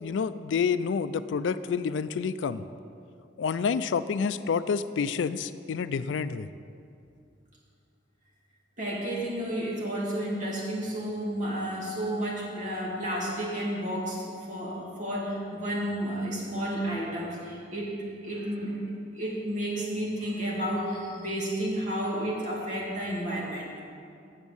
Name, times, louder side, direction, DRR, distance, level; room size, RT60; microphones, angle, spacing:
voice 1, 0.0-2.6 3.4-6.5, left 6 dB, 85° left, 14 dB, 0.4 m, -28 dB
voice 2, 8.8-18.8 19.1-23.7, equal, 45° right, -4 dB, 2.3 m, -31 dB
8.1 x 7.2 x 7.0 m, 2.4 s
head